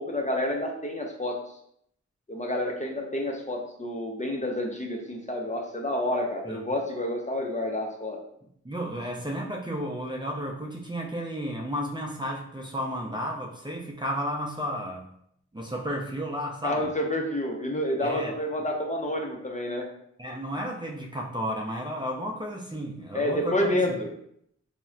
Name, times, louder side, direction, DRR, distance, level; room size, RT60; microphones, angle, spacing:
voice 1, 0.0-1.4 2.3-8.2 16.6-19.9 23.1-24.1, left 1 dB, 25° left, 1 dB, 0.6 m, -29 dB
voice 2, 8.6-15.1 15.5-16.9 18.0-18.3 20.2-24.0, equal, 15° right, -1 dB, 0.6 m, -33 dB
4.1 x 2.1 x 2.4 m, 0.71 s
cardioid pair, 40°, 30 cm